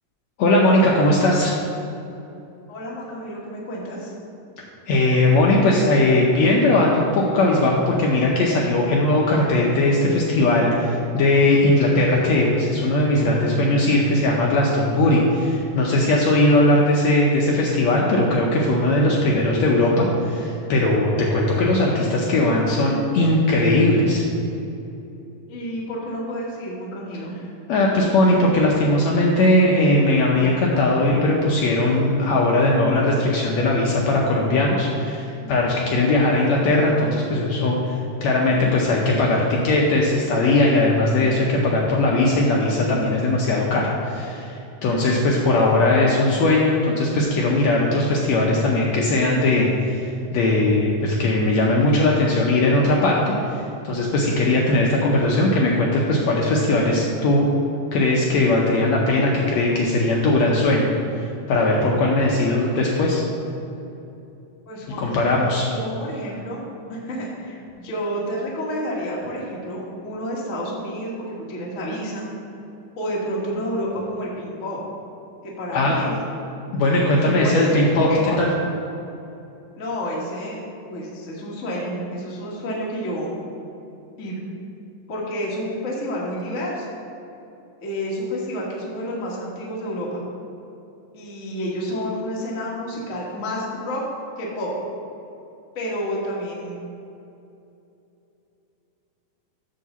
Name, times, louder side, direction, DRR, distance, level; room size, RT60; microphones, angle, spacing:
voice 1, 0.4-1.6 4.9-24.2 27.7-50.1 50.3-57.4 57.9-60.9 61.5-63.2 65.0-65.7 75.7-76.0 76.7-78.1 78.4-78.5, left 2 dB, 75° left, -2 dB, 1.6 m, -19 dB
voice 2, 2.7-4.1 25.5-27.3 35.4-36.3 64.7-72.2 73.0-74.8 75.4-76.1 77.2-78.4 79.8-80.6 80.9-83.5 84.2-84.4 85.1-86.9 87.8-90.2 91.1-94.0 94.4-94.7 95.7-96.8, equal, 50° left, -4 dB, 0.9 m, -30 dB
9.2 x 3.9 x 6.8 m, 2.8 s
omnidirectional pair, 3.8 m